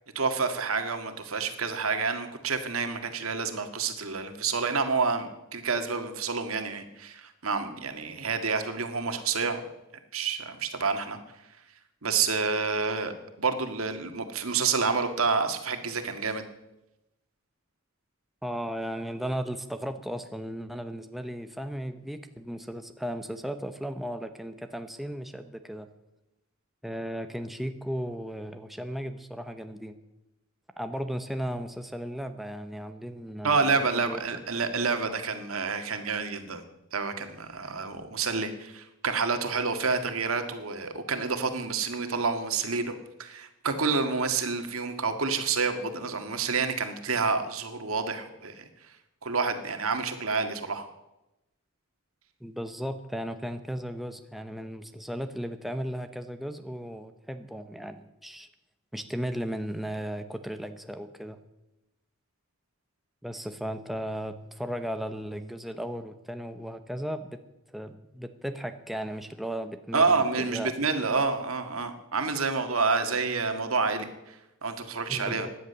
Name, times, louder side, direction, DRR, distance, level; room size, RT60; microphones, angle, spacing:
voice 1, 0.2-9.6 10.1-11.2 12.0-16.4 33.4-36.6 36.9-48.6 49.2-50.9 69.9-75.5, right 4 dB, 90° right, 7 dB, 1.8 m, -28 dB
voice 2, 18.4-25.9 26.8-30.0 30.8-34.2 52.4-58.5 58.9-61.4 63.2-67.4 67.7-70.7 75.1-75.5, equal, ahead, 8 dB, 0.8 m, -36 dB
16.5 x 10.5 x 6.9 m, 0.93 s
head